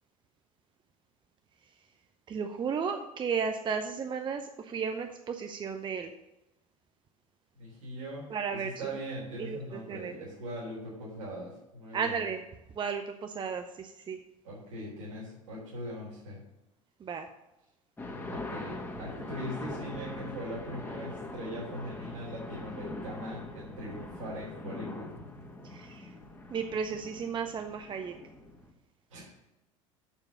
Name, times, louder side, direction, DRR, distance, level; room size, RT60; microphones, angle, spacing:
voice 1, 2.3-6.1 8.3-9.0 9.4-10.1 11.9-12.4 12.8-14.2 17.0-17.3 25.7-26.1 26.5-28.1, right 6 dB, 30° right, 6 dB, 0.7 m, -34 dB
voice 2, 7.5-12.2 14.4-16.4 18.3-25.1 29.1-29.3, equal, 70° right, -6 dB, 3.7 m, -41 dB
sound 1, 18.0-28.7, left 2 dB, 15° left, 1.9 m, -42 dB
7.2 x 6.8 x 6.8 m, 0.93 s
figure-of-eight pair, 70°, 17 cm